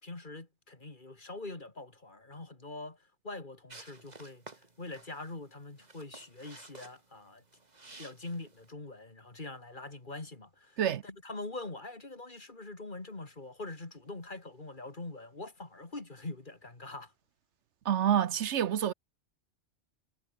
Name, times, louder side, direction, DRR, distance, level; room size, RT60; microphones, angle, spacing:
voice 1, 0.0-3.0 3.2-4.4 4.8-7.4 8.0-17.1, left 2 dB, 40° left, 2.9 m, -43 dB
sound 1, 3.7-8.7, right 3 dB, 35° right, 2.2 m, -53 dB
voice 2, 17.8-18.9, right 10 dB, 70° right, 1.0 m, -27 dB
omnidirectional pair, 1.2 m